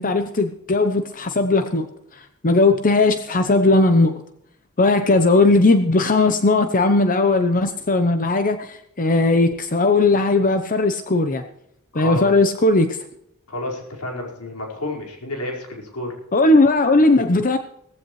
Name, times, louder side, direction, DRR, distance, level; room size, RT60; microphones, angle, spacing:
voice 1, 0.0-1.9 2.4-4.1 4.8-11.4 11.9-13.0 16.3-17.6, left 2 dB, 40° left, 8 dB, 0.8 m, -17 dB
voice 2, 11.9-12.3 13.5-16.1, left 1 dB, 75° left, 0 dB, 4.9 m, -30 dB
17.5 x 15.5 x 3.2 m, 0.73 s
head